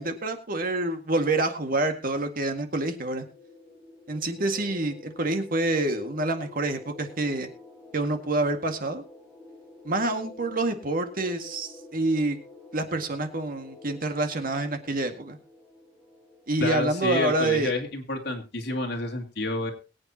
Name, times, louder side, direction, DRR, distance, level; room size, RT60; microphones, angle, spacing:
voice 1, 0.0-3.3 4.1-7.5 7.9-9.0 9.8-12.4 12.7-15.4 16.5-17.7, right 2 dB, 50° right, 6 dB, 1.9 m, -27 dB
sound 1, 2.9-17.2, left 2 dB, 10° left, 5.6 m, -48 dB
voice 2, 16.6-19.7, left 2 dB, 65° left, 3 dB, 2.8 m, -29 dB
22.5 x 8.7 x 2.9 m, 0.30 s
head